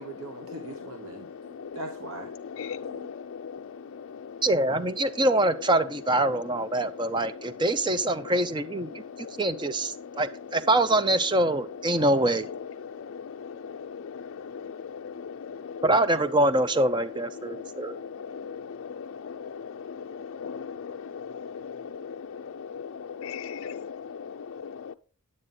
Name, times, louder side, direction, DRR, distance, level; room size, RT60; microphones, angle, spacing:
voice 1, 0.0-2.3 2.9-3.1, right 2 dB, 70° right, 1.2 m, -41 dB
voice 2, 2.6-2.9 15.0-15.1 18.3-18.6 20.4-20.7 21.6-21.7 22.7-22.8 23.2-24.0, left 7 dB, 65° left, 0.4 m, -35 dB
voice 3, 4.4-12.5 15.8-18.0, right 1 dB, 20° right, 0.6 m, -24 dB
9.8 x 9.1 x 3.9 m
head